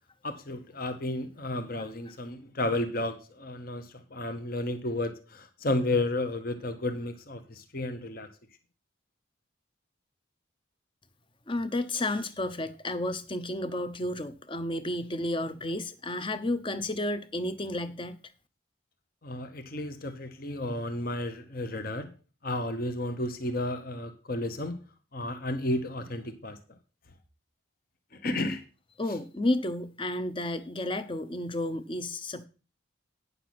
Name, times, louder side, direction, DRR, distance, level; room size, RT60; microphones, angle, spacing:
voice 1, 0.2-3.8 4.1-5.1 5.6-7.4 7.7-8.3 19.2-22.1 22.4-24.8 25.1-26.6 28.2-28.6, left 2 dB, 45° left, 1.0 m, -32 dB
voice 2, 11.5-18.2 29.0-32.5, left 1 dB, 25° left, 0.7 m, -32 dB
9.5 x 6.8 x 5.9 m
head